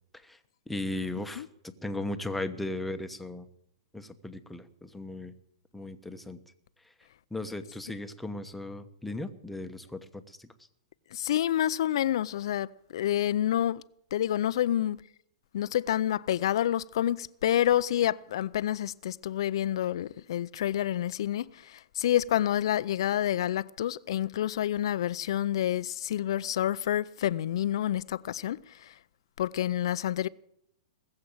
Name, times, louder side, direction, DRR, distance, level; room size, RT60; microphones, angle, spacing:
voice 1, 0.7-1.4 1.8-3.4 3.9-5.3 5.7-6.4 7.3-10.5, left 2 dB, 5° left, 1.1 m, -36 dB
voice 2, 11.1-13.8 14.1-15.0 15.5-28.6 29.4-30.3, left 11 dB, 70° left, 0.5 m, -28 dB
20.0 x 7.7 x 8.7 m
hypercardioid pair, 130°, 3 cm